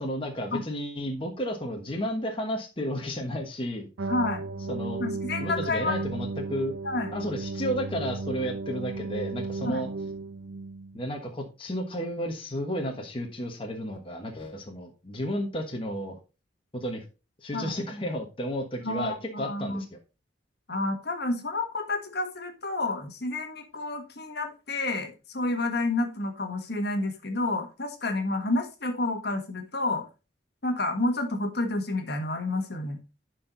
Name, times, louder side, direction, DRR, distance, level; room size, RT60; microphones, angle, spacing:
voice 1, 0.0-3.9 4.7-5.0 5.4-6.7 7.1-9.9 10.9-16.2 16.7-17.0 17.4-20.0, equal, 30° left, 2 dB, 1.3 m, -32 dB
sound 1, 4.0-11.1, right 3 dB, 85° right, 0.5 m, -34 dB
voice 2, 4.1-4.4 5.0-6.0 6.8-7.1 9.6-9.8 17.5-17.8 18.8-19.8 20.7-30.1 30.6-33.0, left 2 dB, 55° left, 6 dB, 1.6 m, -30 dB
11.0 x 4.6 x 3.9 m, 0.30 s
head